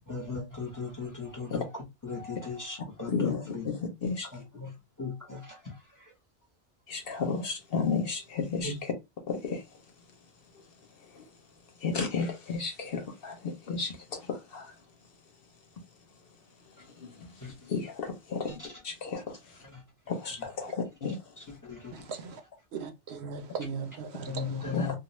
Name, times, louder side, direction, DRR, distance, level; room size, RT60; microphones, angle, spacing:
voice 1, 0.1-3.7 4.3-4.7 5.0-6.1 8.6-8.8 17.4-17.5 18.5-18.8 19.6-19.8 21.4-22.1 24.3-25.0, left 4 dB, 20° left, 0.9 m, -38 dB
voice 2, 3.1-4.3 6.9-8.9 9.3-9.6 11.8-13.9 14.3-14.6 17.7-18.5 18.8-19.2 20.1-21.2 24.7-24.9, left 5 dB, 60° left, 0.9 m, -32 dB
voice 3, 22.7-24.7, right 5 dB, 70° right, 0.8 m, -38 dB
2.4 x 2.3 x 3.0 m
omnidirectional pair, 1.2 m